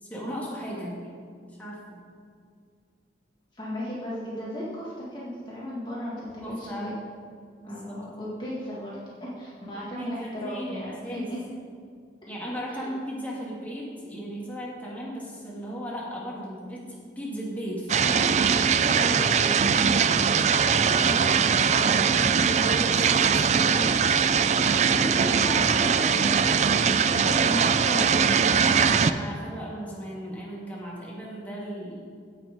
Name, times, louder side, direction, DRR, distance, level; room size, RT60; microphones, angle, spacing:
voice 1, 0.0-0.9 1.6-1.8 6.4-7.0 7.6-8.0 9.7-11.3 12.3-18.6 20.8-21.6 21.9-24.0 28.8-32.0, equal, 10° left, -5 dB, 2.3 m, -36 dB
voice 2, 3.5-6.9 7.6-11.4 12.7-12.9 18.9-19.7 24.7-26.4 27.1-28.2, equal, 25° left, -6 dB, 2.0 m, -35 dB
sound 1, 17.9-29.1, right 6 dB, 40° right, 0.4 m, -21 dB
16.5 x 6.1 x 5.3 m, 2.2 s
head